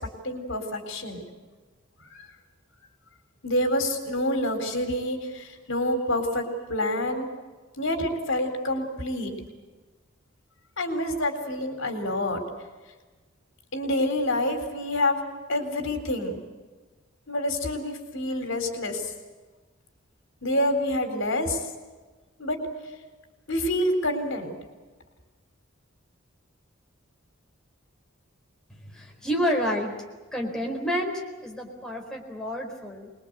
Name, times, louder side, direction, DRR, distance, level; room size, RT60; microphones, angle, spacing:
voice 1, 0.2-1.3 2.1-2.3 3.4-6.4 6.7-7.3 7.8-9.3 10.8-12.4 13.7-15.2 15.5-16.4 17.3-19.0 20.4-21.6 22.4-22.6 23.5-24.5, left 1 dB, 65° left, 6 dB, 4.0 m, -27 dB
voice 2, 28.7-30.0 30.3-33.1, equal, 5° left, -1 dB, 4.3 m, -29 dB
25.5 x 21.5 x 8.1 m, 1.3 s
head